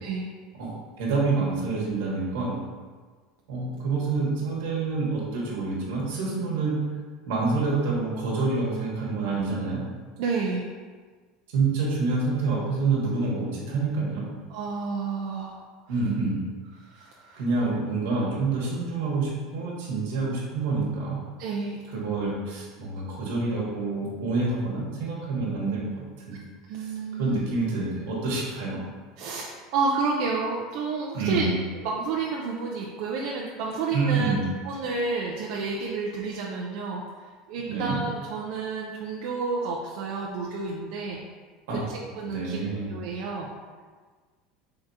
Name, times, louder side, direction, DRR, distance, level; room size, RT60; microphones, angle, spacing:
voice 1, 1.0-2.6 3.5-6.7 7.3-9.8 11.5-14.3 15.9-16.4 17.4-21.2 21.9-25.8 26.3-26.4 26.8-26.9 27.2-28.8 31.1-31.5 33.9-34.4 37.7-37.9 41.7-41.9 42.3-42.9, right 3 dB, 85° right, -4 dB, 1.2 m, -27 dB
voice 2, 10.2-10.7 14.5-15.6 16.8-17.4 21.4-21.8 26.7-27.5 29.2-31.5 31.7-34.3 34.6-37.0 37.5-41.2 41.7-42.6 42.9-43.5, right 4 dB, 60° right, -3 dB, 0.4 m, -30 dB
3.7 x 3.4 x 2.7 m, 1.5 s
supercardioid pair, 150°, 0 cm